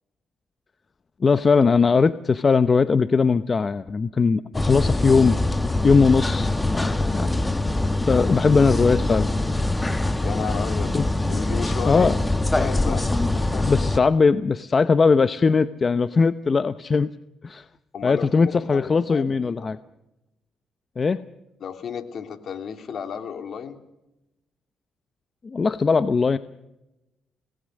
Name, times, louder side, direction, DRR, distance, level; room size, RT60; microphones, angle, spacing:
voice 1, 1.2-5.3 5.8-7.7 8.1-9.3 10.9-11.0 11.9-12.1 13.6-17.1 17.4-17.6 18.0-19.8 21.0-21.2 25.4-26.4, left 5 dB, 35° left, 13 dB, 0.8 m, -20 dB
sound 1, 4.5-14.0, left 2 dB, 10° left, 1.3 m, -23 dB
voice 2, 8.1-8.6 8.9-9.0 10.2-10.9 11.3-12.2 12.5-13.7 17.9-19.7 21.6-23.8, left 7 dB, 60° left, 7 dB, 3.0 m, -33 dB
26.0 x 19.0 x 6.5 m, 0.93 s
cardioid pair, 90°, 0 cm